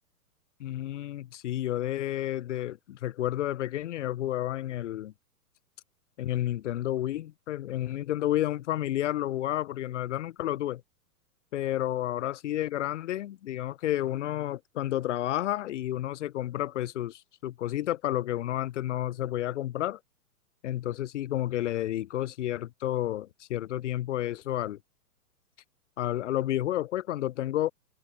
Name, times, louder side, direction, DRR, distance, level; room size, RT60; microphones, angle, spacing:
voice 1, 0.6-5.1 6.2-10.8 11.5-20.0 20.6-24.8 26.0-27.7, left 13 dB, 50° left, 0.6 m, -31 dB
figure-of-eight pair, 115°, 46 cm